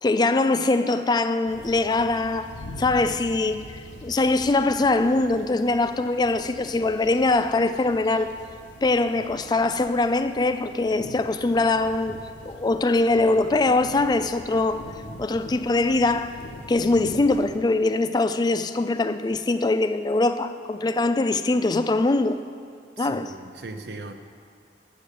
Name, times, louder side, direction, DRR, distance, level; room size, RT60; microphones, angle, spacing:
voice 1, 0.0-2.5 2.8-8.3 8.8-12.2 12.5-14.8 15.2-16.4 16.7-22.4 23.0-23.3, left 2 dB, 25° left, 10 dB, 0.3 m, -22 dB
sound 1, 1.5-17.6, left 1 dB, 85° left, 0.8 m, -43 dB
voice 2, 23.0-24.1, right 3 dB, 65° right, 7 dB, 0.7 m, -38 dB
8.4 x 7.0 x 6.6 m, 2.5 s
head